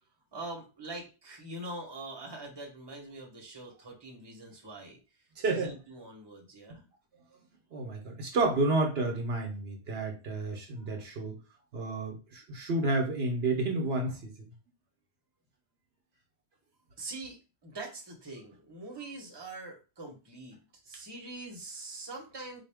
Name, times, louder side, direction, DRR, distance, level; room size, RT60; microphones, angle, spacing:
voice 1, 0.3-5.0 5.4-6.8 17.0-17.4 17.6-20.6 20.8-22.6, right 2 dB, 25° right, 0.9 m, -43 dB
voice 2, 5.4-5.7 6.7-6.8 7.7-11.4 11.7-14.3, right 2 dB, 70° right, 1.0 m, -30 dB
4.2 x 2.2 x 3.4 m
omnidirectional pair, 1.1 m